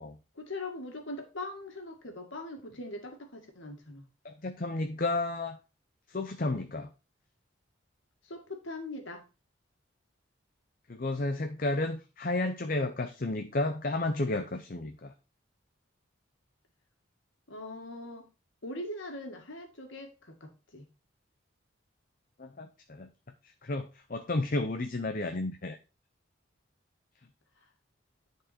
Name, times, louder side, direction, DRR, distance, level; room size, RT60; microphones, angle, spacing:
voice 1, 0.4-4.1 8.3-9.2 17.5-18.3 18.6-20.9, left 2 dB, 75° left, 4 dB, 2.0 m, -41 dB
voice 2, 4.2-5.6 6.1-6.9 10.9-15.1 22.4-23.1 23.4-25.8, left 2 dB, 45° left, 7 dB, 0.7 m, -32 dB
10.5 x 4.7 x 4.2 m, 0.31 s
head